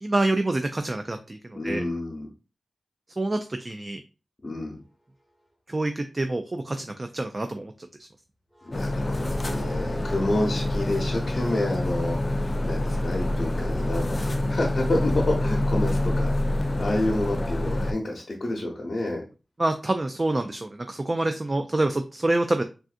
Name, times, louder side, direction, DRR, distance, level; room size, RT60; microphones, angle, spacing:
voice 1, 0.0-1.8 3.2-4.0 5.7-7.9 19.6-22.6, right 2 dB, 40° right, 7 dB, 0.3 m, -27 dB
voice 2, 1.5-2.3 4.4-4.8 8.6-19.2, left 2 dB, 60° left, -2 dB, 0.8 m, -29 dB
sound 1, 5.2-5.4 8.5-12.4 12.8-16.4, equal, 10° left, 1.0 m, -49 dB
sound 2, 8.7-17.9, left 1 dB, 35° left, 0.4 m, -26 dB
3.4 x 2.6 x 2.4 m, 0.32 s
cardioid pair, 50°, 0 cm